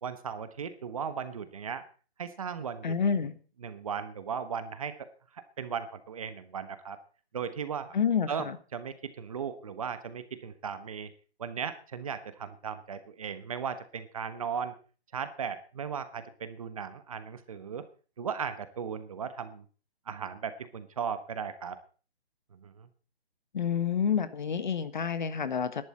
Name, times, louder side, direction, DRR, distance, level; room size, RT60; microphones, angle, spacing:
voice 1, 0.0-1.8 2.2-3.0 3.6-5.1 5.3-7.0 7.3-7.9 8.3-11.1 11.4-14.7 15.1-17.8 18.2-19.6 20.1-21.8 22.5-22.9, right 7 dB, 35° right, 11 dB, 1.2 m, -37 dB
voice 2, 2.8-3.4 7.9-8.6 23.5-25.8, left 7 dB, 45° left, 12 dB, 1.3 m, -28 dB
16.5 x 11.5 x 4.3 m, 0.38 s
hypercardioid pair, 165°, 32 cm